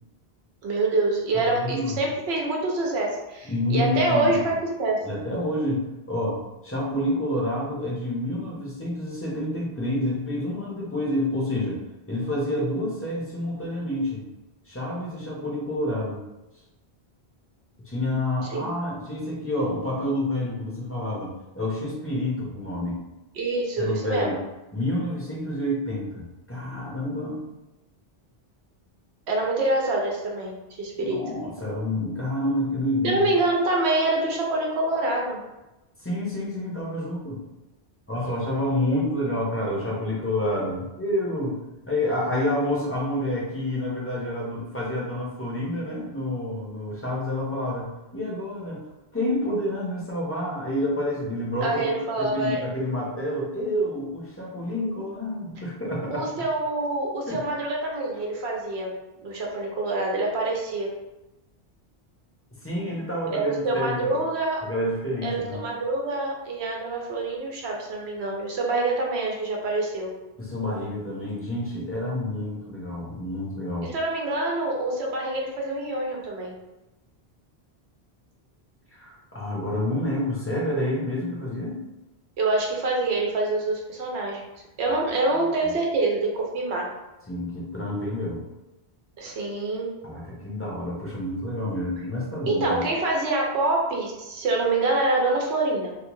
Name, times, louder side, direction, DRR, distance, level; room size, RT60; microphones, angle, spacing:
voice 1, 0.6-4.5 4.8-5.0 18.5-18.7 23.3-24.4 29.3-31.2 33.0-35.4 51.6-52.6 56.1-58.9 59.2-60.9 63.3-64.6 65.2-70.1 73.8-76.5 82.4-84.4 84.8-86.9 89.2-89.9 92.4-95.9, right 2 dB, 85° right, -1 dB, 0.9 m, -26 dB
voice 2, 1.3-2.0 3.4-4.4 5.0-11.8 12.1-14.2 14.7-16.2 17.9-23.0 23.8-24.4 24.7-27.4 31.0-33.2 36.0-37.4 38.1-41.6 41.8-48.8 49.1-56.3 57.3-57.4 62.6-64.1 64.6-65.6 70.4-73.9 78.9-81.8 84.9-85.1 87.3-88.4 90.0-92.9, left 1 dB, 15° left, -5 dB, 0.5 m, -28 dB
2.8 x 2.2 x 3.0 m, 0.99 s
omnidirectional pair, 1.1 m